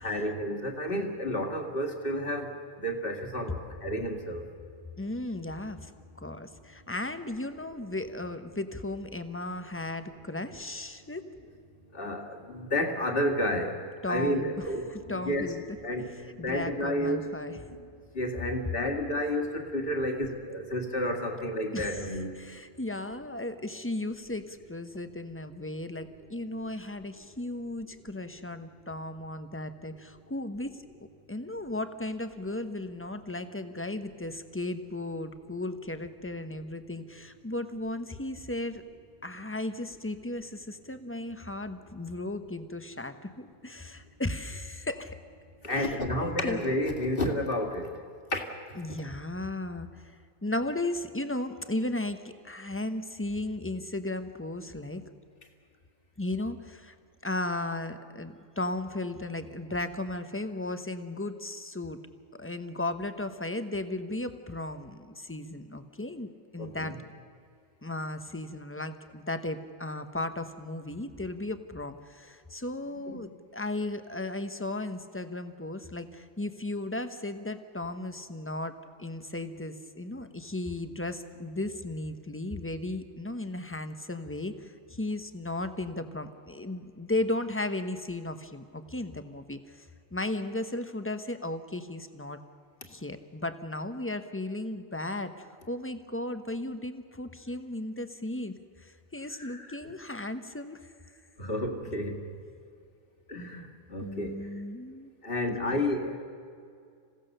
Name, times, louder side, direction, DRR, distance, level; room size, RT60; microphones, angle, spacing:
voice 1, 0.0-4.5 11.9-13.8 14.1-15.5 15.8-17.2 18.1-22.4 45.6-47.9 48.3-48.4 66.6-66.9 73.1-73.2 99.4-99.8 101.4-102.2 103.3-104.5 105.2-106.1, left 1 dB, 45° left, 3 dB, 2.4 m, -31 dB
voice 2, 5.0-5.9 6.2-11.2 12.2-12.4 14.0-15.6 16.1-17.6 21.7-30.7 31.3-38.8 39.2-45.2 45.7-46.8 48.8-50.1 50.4-55.1 56.2-56.9 57.2-62.0 62.4-66.9 67.8-92.4 92.8-100.8 104.0-105.1 105.5-105.9, left 2 dB, 10° left, 9 dB, 0.8 m, -35 dB
27.5 x 16.5 x 6.7 m, 2.3 s
omnidirectional pair, 1.4 m